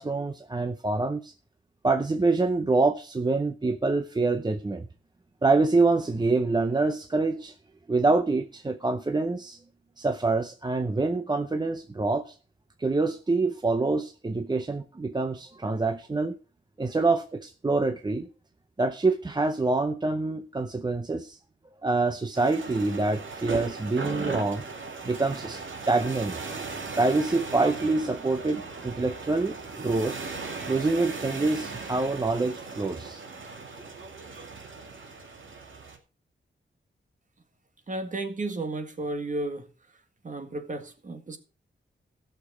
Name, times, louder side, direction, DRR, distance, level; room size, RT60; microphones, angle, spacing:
voice 1, 0.0-1.3 1.8-4.9 5.4-7.5 7.9-9.6 10.0-12.4 12.8-16.4 16.8-18.3 18.8-21.4 21.8-24.6 25.0-26.4 27.0-30.1 30.7-33.2, right 3 dB, 20° right, 0.6 m, -26 dB
sound 1, 22.3-36.0, right 4 dB, 85° right, 2.4 m, -38 dB
voice 2, 37.9-39.7 40.2-41.4, right 2 dB, 40° right, 1.8 m, -33 dB
16.0 x 6.7 x 4.9 m
wide cardioid pair, 160°, 19 cm